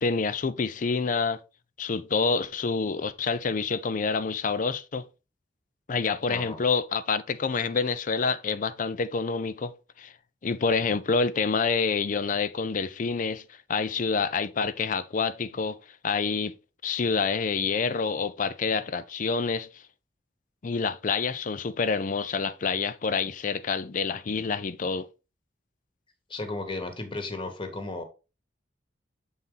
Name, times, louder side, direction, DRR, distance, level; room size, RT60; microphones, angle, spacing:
voice 1, 0.0-1.4 1.8-5.0 5.9-9.7 10.0-10.1 10.4-13.4 13.7-15.8 16.0-16.5 16.8-19.7 20.6-25.1, left 4 dB, 45° left, 0.5 m, -27 dB
voice 2, 6.3-6.6 26.3-28.0, left 2 dB, 25° left, 1.2 m, -34 dB
7.3 x 4.0 x 3.8 m
head